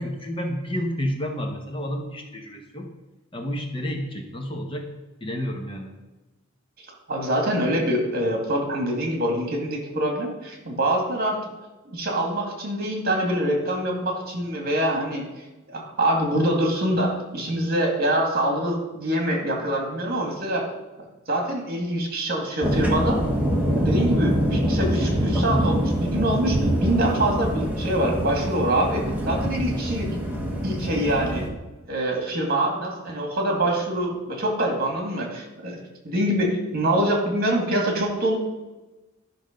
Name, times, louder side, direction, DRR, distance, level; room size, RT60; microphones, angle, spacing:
voice 1, 0.0-2.9 3.3-4.9 5.2-5.9, equal, 25° left, 3 dB, 1.1 m, -30 dB
voice 2, 7.1-11.4 11.9-15.2 15.7-20.7 21.3-23.2 23.7-30.1 30.6-31.5 31.9-35.8 36.0-38.4, right 1 dB, 50° right, 2 dB, 2.3 m, -25 dB
sound 1, 22.6-31.5, equal, 5° right, 1.4 m, -24 dB
12.0 x 6.2 x 5.2 m, 1.1 s
head